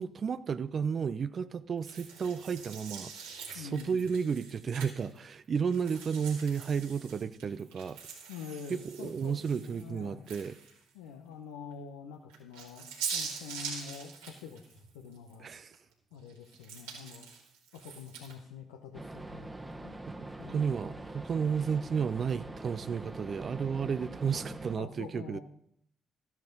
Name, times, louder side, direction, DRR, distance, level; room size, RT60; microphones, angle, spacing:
voice 1, 0.0-8.0 8.8-10.6 15.4-15.8 20.1-25.4, right 6 dB, 50° right, 0.5 m, -33 dB
sound 1, 1.8-5.2 5.7-10.9 11.3-11.4 12.3-15.4 15.7-18.4, right 6 dB, 85° right, 2.9 m, -43 dB
voice 2, 3.5-4.0 8.3-10.4 10.9-15.5 16.1-17.3 17.7-19.6 19.8-20.0 20.4-20.7 24.3-25.4, left 6 dB, 80° left, 0.9 m, -46 dB
sound 2, 18.9-24.7, right 2 dB, 15° right, 1.3 m, -43 dB
13.5 x 10.5 x 3.9 m
hypercardioid pair, 45°, 0 cm